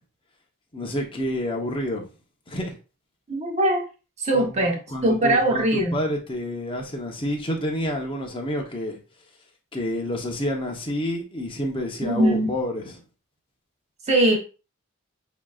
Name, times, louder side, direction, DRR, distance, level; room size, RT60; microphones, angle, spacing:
voice 1, 0.7-2.0 2.5-2.8 4.3-9.0 9.7-13.0, left 1 dB, 25° left, 1.0 m, -29 dB
voice 2, 3.3-3.8 4.2-6.0 12.0-12.5 14.1-14.4, right 1 dB, 30° right, 1.0 m, -21 dB
7.1 x 2.9 x 2.4 m
head